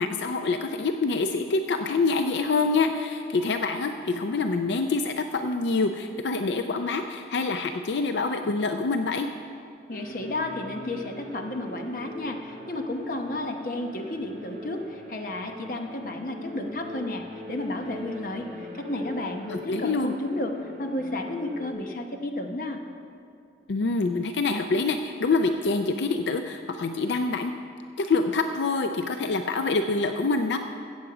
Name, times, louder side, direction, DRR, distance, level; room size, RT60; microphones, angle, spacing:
voice 1, 0.0-9.3 19.5-20.1 23.7-27.5 28.0-30.6, left 3 dB, 80° left, 7 dB, 0.4 m, -26 dB
voice 2, 9.9-17.2 17.5-20.5 20.8-22.8, left 1 dB, 50° left, 4 dB, 0.9 m, -32 dB
sound 1, 9.9-21.7, left 2 dB, 45° right, 1.9 m, -41 dB
14.5 x 8.1 x 4.9 m, 2.4 s
head